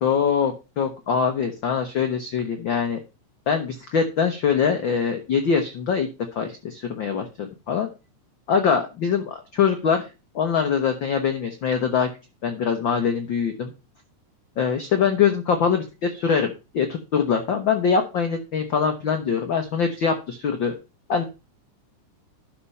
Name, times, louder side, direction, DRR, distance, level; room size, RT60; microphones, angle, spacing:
voice 1, 0.0-3.0 3.5-6.1 6.3-7.9 8.5-10.1 10.3-12.1 12.4-13.7 14.6-20.7 21.1-21.2, left 6 dB, 65° left, 6 dB, 1.2 m, -23 dB
12.0 x 4.4 x 5.4 m, 0.29 s
omnidirectional pair, 3.5 m